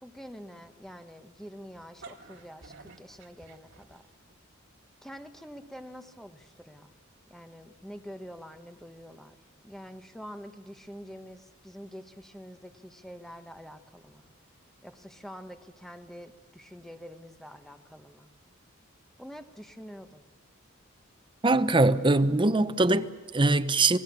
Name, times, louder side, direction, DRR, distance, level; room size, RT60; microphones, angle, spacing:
voice 1, 0.0-4.0 5.0-6.9 7.3-9.4 9.6-14.2 14.8-18.3 19.2-20.3, equal, ahead, 1.1 m, -46 dB
sound 1, 1.7-4.3, right 4 dB, 65° right, 2.3 m, -51 dB
voice 2, 21.4-24.0, right 2 dB, 25° right, 0.8 m, -22 dB
27.0 x 18.5 x 6.9 m
head